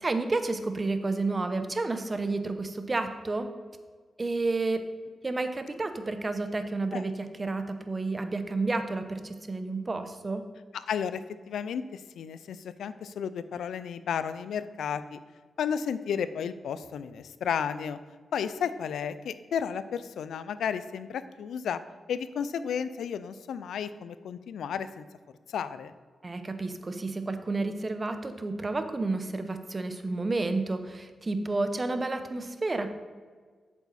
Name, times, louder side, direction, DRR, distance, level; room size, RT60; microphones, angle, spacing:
voice 1, 0.0-3.5 4.2-4.8 5.2-10.5 26.2-32.9, right 3 dB, 35° right, 9 dB, 0.8 m, -30 dB
voice 2, 10.7-11.2 11.5-15.2 15.6-18.0 18.3-21.8 22.1-25.0 25.5-25.9, left 7 dB, 90° left, 13 dB, 0.4 m, -33 dB
8.4 x 7.0 x 4.1 m, 1.5 s
cardioid pair, 65°, 0 cm